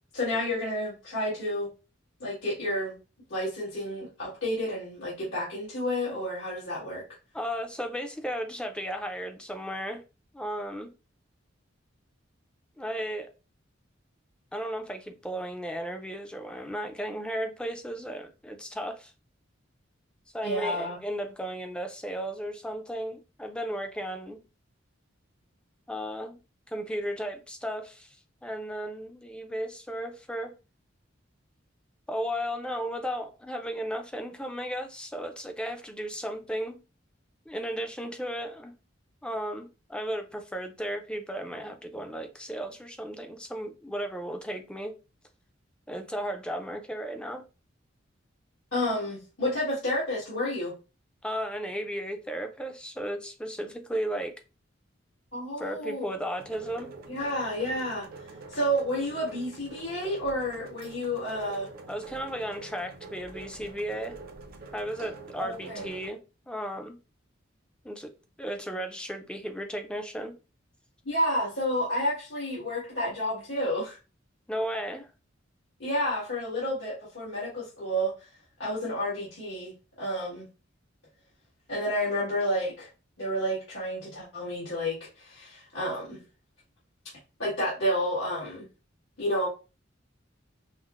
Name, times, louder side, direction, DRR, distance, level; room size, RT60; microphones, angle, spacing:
voice 1, 0.1-1.7 2.2-3.0 3.3-7.0 20.4-21.0 48.7-50.7 55.3-56.1 57.1-58.1 58.5-61.7 65.4-65.9 71.0-74.0 75.8-78.1 78.6-80.4 81.7-82.9 83.2-86.2 87.4-88.7 89.2-89.5, equal, 75° left, 1.6 m, -30 dB
voice 2, 7.3-10.0 10.3-10.9 12.8-13.3 14.5-19.1 20.3-24.4 25.9-26.4 26.7-28.2 28.4-30.5 32.1-36.8 37.5-38.7 39.2-45.0 45.9-47.4 51.2-54.3 55.6-56.9 61.9-64.2 64.7-67.0 67.8-68.1 68.4-70.4 74.5-75.1, equal, 5° left, 0.4 m, -35 dB
sound 1, 56.4-66.1, right 3 dB, 50° right, 0.5 m, -45 dB
5.5 x 2.0 x 2.4 m
head